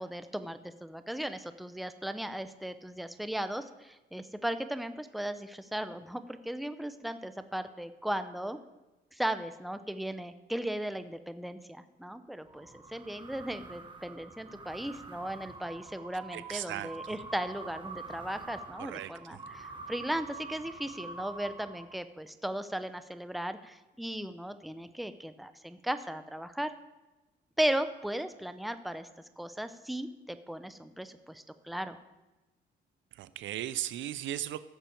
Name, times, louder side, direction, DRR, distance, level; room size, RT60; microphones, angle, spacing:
voice 1, 0.0-8.6 9.1-26.7 27.6-29.1 29.4-32.0, right 1 dB, ahead, 10 dB, 0.7 m, -36 dB
sound 1, 12.4-22.2, right 3 dB, 25° right, 1.4 m, -46 dB
voice 2, 16.3-17.1 18.8-19.1 33.2-34.6, right 13 dB, 75° right, 15 dB, 0.5 m, -37 dB
15.0 x 6.8 x 4.5 m, 1.1 s
cardioid pair, 90°, 20 cm